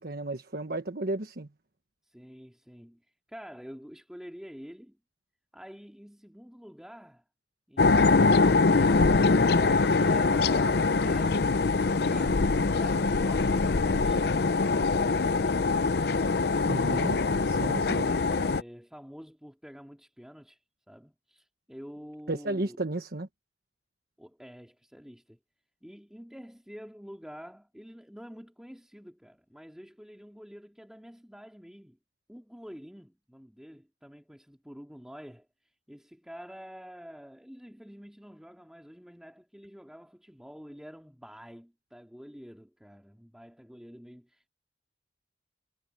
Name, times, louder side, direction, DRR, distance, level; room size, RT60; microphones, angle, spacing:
voice 1, 0.0-1.5 16.6-17.2 17.5-18.0 22.3-23.3, right 2 dB, 60° right, 1.4 m, -33 dB
voice 2, 2.1-5.0 5.5-7.2 7.7-11.5 12.1-16.2 16.8-17.2 18.0-20.6 20.9-22.8 24.2-25.4 25.8-32.0 32.3-44.5, equal, 5° right, 2.2 m, -48 dB
sound 1, 7.8-18.6, left 3 dB, 65° left, 0.6 m, -23 dB
head